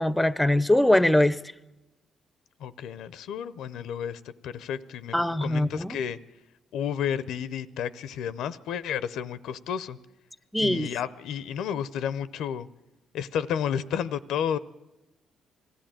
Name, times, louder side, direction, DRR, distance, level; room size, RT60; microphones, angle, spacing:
voice 1, 0.0-1.4 5.1-6.0 10.5-10.9, left 1 dB, 5° left, 0.6 m, -22 dB
voice 2, 2.6-6.2 6.7-10.0 10.6-12.7 13.1-14.6, left 8 dB, 85° left, 0.6 m, -31 dB
20.5 x 14.0 x 8.9 m
cardioid pair, 90°, 0 cm